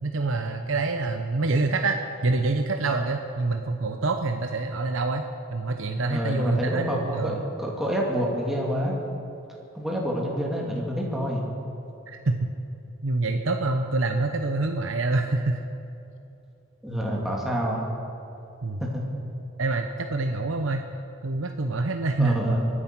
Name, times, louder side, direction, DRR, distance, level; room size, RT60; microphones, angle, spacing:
voice 1, 0.0-5.2 5.5-7.4 12.1-12.5 13.0-15.6 18.6-18.8 19.6-20.9 21.2-22.6, right 3 dB, 90° right, 5 dB, 0.9 m, -26 dB
voice 2, 6.1-8.9 9.7-11.5 16.8-17.8 18.8-19.1 22.2-22.7, equal, ahead, -3 dB, 2.6 m, -27 dB
23.5 x 9.9 x 6.1 m, 2.8 s
head